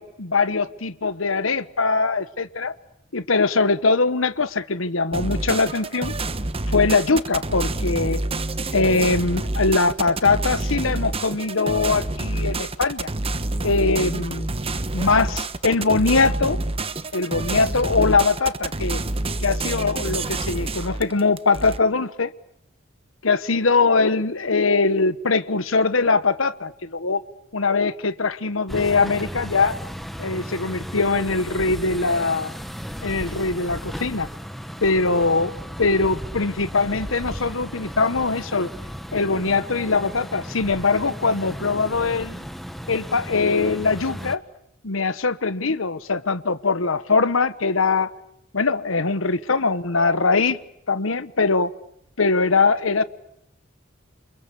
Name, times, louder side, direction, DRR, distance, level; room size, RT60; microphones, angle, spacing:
voice 1, 0.0-2.7 3.1-6.1 6.7-8.2 8.7-13.1 13.6-14.5 14.9-16.6 17.1-19.0 19.4-22.3 23.2-27.2 27.5-29.7 30.2-32.5 33.0-34.3 34.8-35.5 35.8-38.7 39.1-42.4 42.9-44.4 44.8-48.1 48.5-50.6 50.9-51.7 52.2-53.0, left 4 dB, 90° left, 14 dB, 1.3 m, -22 dB
sound 1, 5.1-21.8, right 2 dB, 30° right, 1.2 m, -27 dB
sound 2, 28.7-44.4, equal, ahead, 1.5 m, -35 dB
29.0 x 27.0 x 7.1 m, 0.74 s
head